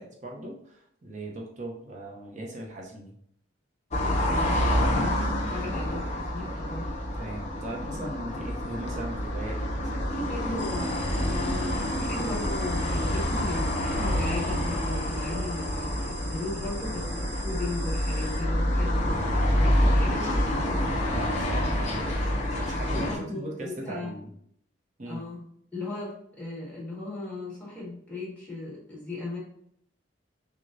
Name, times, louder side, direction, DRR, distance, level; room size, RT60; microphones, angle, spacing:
voice 1, 0.0-3.2 5.5-5.8 7.2-10.2 21.1-24.3 25.0-25.2, right 1 dB, 40° right, -1 dB, 0.7 m, -39 dB
sound 1, 3.9-23.1, left 1 dB, 40° left, 0.7 m, -27 dB
voice 2, 4.0-5.2 5.5-6.9 10.1-19.3 19.5-20.3 22.9-24.2 25.1-25.4 25.7-29.4, left 2 dB, 10° left, -7 dB, 1.5 m, -37 dB
sound 2, 10.6-18.4, right 2 dB, 25° right, 1.0 m, -43 dB
6.0 x 2.2 x 2.6 m, 0.69 s
head